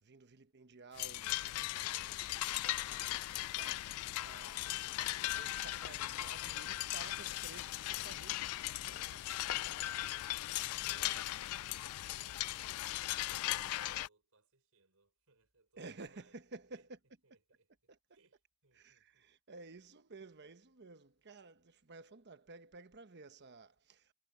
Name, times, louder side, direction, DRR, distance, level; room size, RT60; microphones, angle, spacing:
voice 1, 0.0-2.3 2.8-4.8 5.1-9.6 10.9-11.3 15.8-17.0 17.9-18.0 18.7-24.1, right 3 dB, 50° right, 1.1 m, -54 dB
sound 1, 1.0-14.1, left 16 dB, 85° left, 0.3 m, -38 dB
voice 2, 10.3-11.4 12.0-16.9 17.2-19.3, right 3 dB, 75° right, 5.3 m, -72 dB
head